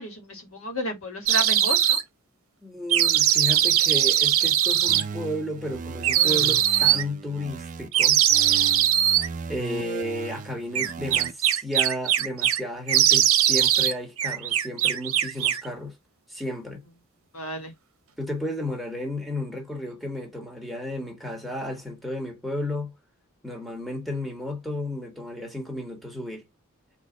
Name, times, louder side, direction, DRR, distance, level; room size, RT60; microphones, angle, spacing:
voice 1, 0.0-2.0 8.9-9.1 17.3-17.7, equal, 70° left, 1.6 m, -32 dB
sound 1, 1.3-2.0 2.9-5.0 6.0-7.0 7.9-9.3 10.7-12.6 12.9-13.9 14.2-15.7, right 11 dB, 70° right, 0.8 m, -21 dB
voice 2, 2.6-8.2 9.5-15.9 16.3-16.8 18.2-22.9 23.4-26.5, left 1 dB, ahead, 1.5 m, -33 dB
sound 2, 4.9-7.9 8.3-11.3, right 5 dB, 35° right, 0.4 m, -37 dB
4.4 x 2.8 x 3.9 m
head